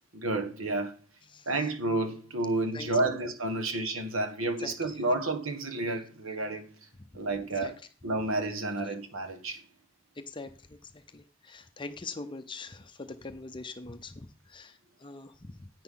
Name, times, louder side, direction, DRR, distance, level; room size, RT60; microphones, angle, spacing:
voice 1, 0.1-0.9 1.4-6.7 7.1-7.7 8.0-9.6, right 2 dB, 80° right, 1.7 m, -30 dB
voice 2, 2.7-3.2 4.6-4.7 7.6-7.7 10.2-15.8, left 3 dB, 25° left, 0.6 m, -43 dB
10.0 x 9.4 x 3.8 m
head